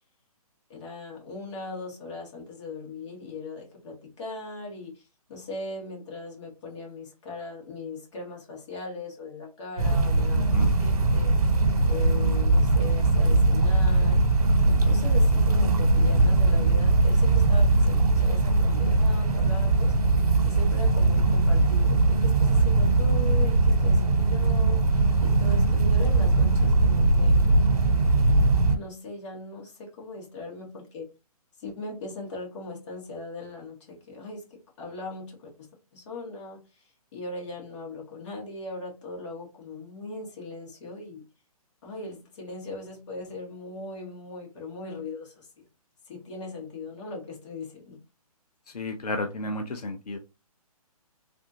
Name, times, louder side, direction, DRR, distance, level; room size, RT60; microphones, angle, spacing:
voice 1, 0.7-11.6 11.9-14.2 14.6-19.9 20.4-27.5 28.7-31.1 31.6-41.2 41.8-45.6 46.1-48.0, left 3 dB, 50° left, 1.9 m, -39 dB
sound 1, 9.8-28.8, right 2 dB, 70° right, 1.0 m, -21 dB
voice 2, 48.7-50.2, left 2 dB, 90° left, 0.6 m, -31 dB
3.4 x 2.5 x 2.7 m
hypercardioid pair, 145°, 19 cm